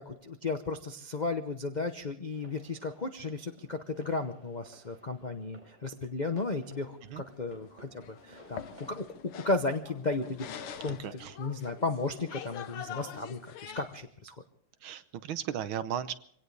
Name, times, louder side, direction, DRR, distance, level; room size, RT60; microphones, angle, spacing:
voice 1, 0.0-10.5 10.8-14.3, left 3 dB, 65° left, 7 dB, 0.4 m, -34 dB
sound 1, 2.3-9.0, right 1 dB, 20° right, 4.4 m, -57 dB
sound 2, 6.7-14.0, left 9 dB, 85° left, 1.9 m, -45 dB
voice 2, 10.9-11.4 14.8-16.1, right 9 dB, 75° right, 12 dB, 1.6 m, -36 dB
24.5 x 17.5 x 3.3 m, 0.66 s
omnidirectional pair, 2.4 m